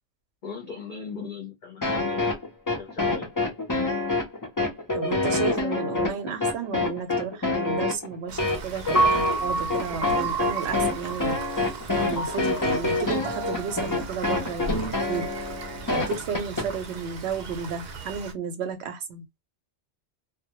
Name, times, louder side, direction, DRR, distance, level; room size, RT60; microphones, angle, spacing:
voice 1, 0.4-2.4 2.8-3.3, left 5 dB, 50° left, 0.7 m, -39 dB
sound 1, 1.8-16.7, left 2 dB, 35° left, 0.3 m, -26 dB
voice 2, 4.9-11.7 12.0-15.3 15.9-19.2, right 6 dB, 75° right, 0.8 m, -33 dB
Rain, 8.3-18.3, right 3 dB, 55° right, 0.5 m, -39 dB
Piano, 8.9-15.1, right 3 dB, ahead, 0.7 m, -30 dB
2.1 x 2.1 x 2.8 m
omnidirectional pair, 1.1 m